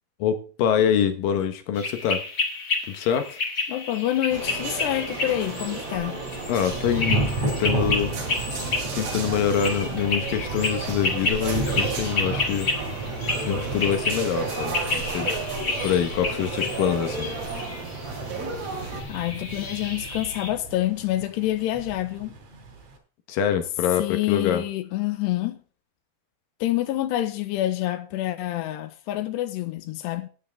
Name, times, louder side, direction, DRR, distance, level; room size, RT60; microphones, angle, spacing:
voice 1, 0.2-2.2 2.9-3.4 6.5-8.6 8.9-12.7 13.5-15.3 15.8-17.3 23.3-24.6, left 9 dB, 70° left, 2.4 m, -25 dB
sound 1, 1.7-20.5, left 3 dB, 35° left, 1.3 m, -31 dB
voice 2, 3.7-6.2 19.1-22.3 24.0-25.6 26.6-30.3, left 14 dB, 85° left, 3.0 m, -27 dB
sound 2, 4.3-19.0, right 4 dB, 70° right, 5.2 m, -33 dB
Thunder / Rain, 6.7-23.0, right 2 dB, 45° right, 3.6 m, -33 dB
14.0 x 9.6 x 3.4 m
omnidirectional pair, 4.9 m